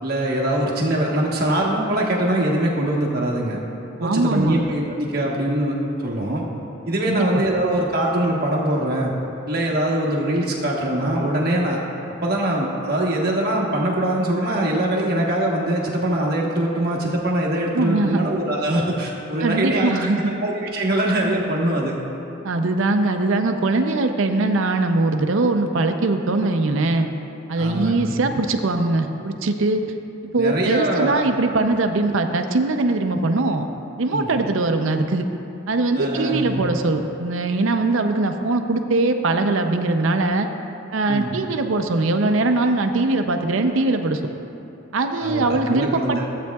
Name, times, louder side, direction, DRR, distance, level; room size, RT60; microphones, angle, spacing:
voice 1, 0.0-3.6 4.0-5.8 6.0-6.4 6.9-9.1 9.5-11.8 12.2-19.9 20.3-22.0 27.6-28.1 30.4-31.3 34.1-34.3 35.9-36.6 41.1-41.3 45.2-46.2, right 1 dB, 45° right, -3 dB, 1.2 m, -22 dB
voice 2, 4.0-4.6 7.1-7.2 17.7-18.3 19.4-20.3 22.4-27.1 27.5-29.8 30.3-33.7 34.0-35.3 35.7-40.5 40.9-44.2 44.9-46.2, right 2 dB, 70° right, 6 dB, 0.5 m, -21 dB
15.0 x 8.4 x 2.3 m, 2.8 s
head